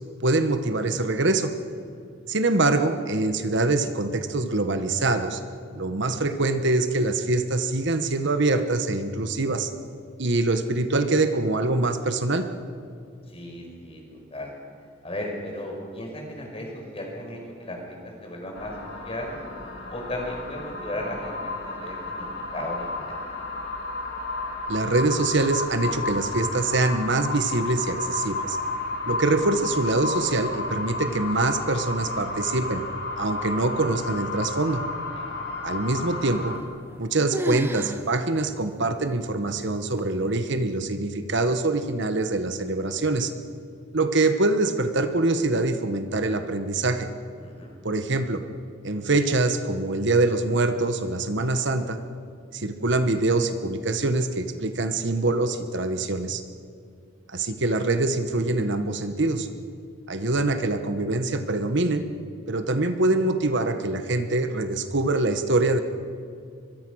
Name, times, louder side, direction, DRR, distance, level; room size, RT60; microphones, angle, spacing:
voice 1, 0.2-1.5 2.3-5.4 5.7-9.7 10.2-12.5 24.7-28.6 29.1-32.8 33.2-34.8 35.6-36.5 37.0-43.3 43.9-47.1 47.8-48.4 48.8-52.0 52.5-56.4 57.3-59.5 60.1-62.0 62.5-65.8, right 2 dB, 60° right, 8 dB, 1.3 m, -24 dB
voice 2, 13.3-14.5 15.0-18.7 19.0-19.4 19.9-22.3 22.5-23.2 35.1-35.3 47.4-47.7, left 1 dB, 30° left, 1 dB, 5.6 m, -35 dB
sound 1, 18.6-36.6, left 3 dB, 55° left, 3.1 m, -32 dB
sound 2, 36.5-37.0 37.3-38.0 38.4-38.5 39.2-39.3 40.0-40.4, right 1 dB, 10° right, 0.8 m, -32 dB
24.0 x 22.5 x 6.4 m, 2.3 s
head